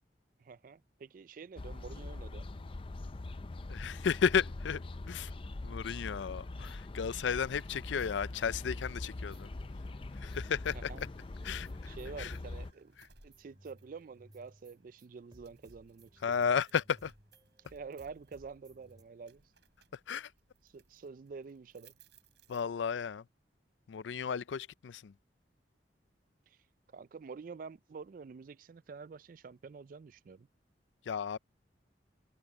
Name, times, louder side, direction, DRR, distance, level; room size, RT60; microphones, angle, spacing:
voice 1, 0.4-2.5 10.9-11.0 11.9-13.0 13.2-16.5 17.7-19.4 20.6-21.9 26.5-26.6 26.9-30.5, right 5 dB, 50° right, 0.3 m, -48 dB
sound 1, 1.6-12.7, left 2 dB, 30° left, 0.4 m, -43 dB
voice 2, 3.7-4.8 5.1-5.3 5.6-9.5 10.1-10.9 11.4-12.3 16.2-17.1 20.1-20.3 22.5-23.2 23.9-25.1 31.1-31.4, left 6 dB, 85° left, 0.4 m, -33 dB
sound 2, 6.6-7.5 8.0-9.6 10.0-19.0, right 1 dB, 20° right, 4.5 m, -63 dB
sound 3, 8.2-23.1, right 5 dB, 70° right, 6.1 m, -68 dB
head